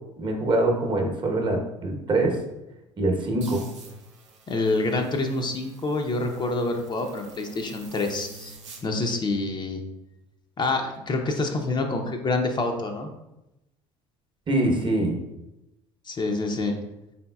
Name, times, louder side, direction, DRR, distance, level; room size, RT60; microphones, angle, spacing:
voice 1, 0.2-2.4 3.0-3.6 14.5-15.2, right 2 dB, 30° right, 2 dB, 0.9 m, -24 dB
sound 1, 3.4-8.8, right 4 dB, 90° right, 0.6 m, -47 dB
voice 2, 4.5-8.6 8.8-9.8 10.6-13.1 16.1-16.8, left 2 dB, 30° left, 3 dB, 0.6 m, -27 dB
4.2 x 3.7 x 2.3 m, 0.93 s
hypercardioid pair, 65°, 15 cm